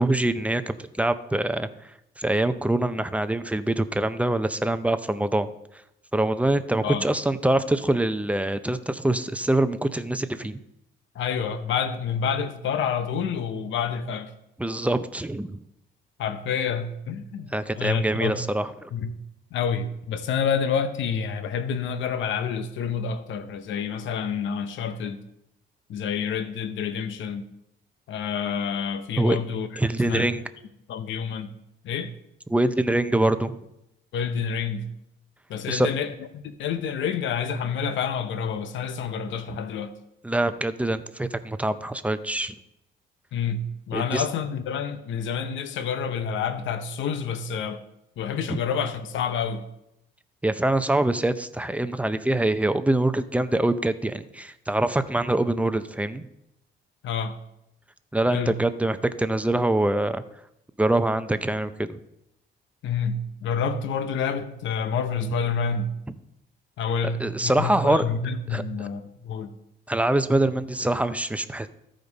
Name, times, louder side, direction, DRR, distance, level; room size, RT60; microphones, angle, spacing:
voice 1, 0.0-1.7 2.2-5.5 6.1-10.6 14.6-15.6 17.5-18.9 29.2-29.4 29.8-30.4 32.5-33.6 35.7-35.9 40.2-42.5 43.9-44.2 48.5-48.6 50.4-56.3 58.1-60.2 60.8-62.0 67.2-68.0 68.5-68.6 69.9-71.7, right 1 dB, 5° right, 0.6 m, -24 dB
voice 2, 11.1-14.3 16.2-18.4 18.9-19.1 19.5-25.2 25.9-27.5 28.1-29.7 30.0-30.3 30.9-31.5 31.8-32.1 34.1-34.8 35.5-39.9 43.3-47.8 48.2-49.7 57.0-57.4 58.3-58.6 62.8-65.9 66.8-69.5, left 6 dB, 75° left, 0.8 m, -28 dB
14.0 x 5.1 x 4.1 m
cardioid pair, 90°, 20 cm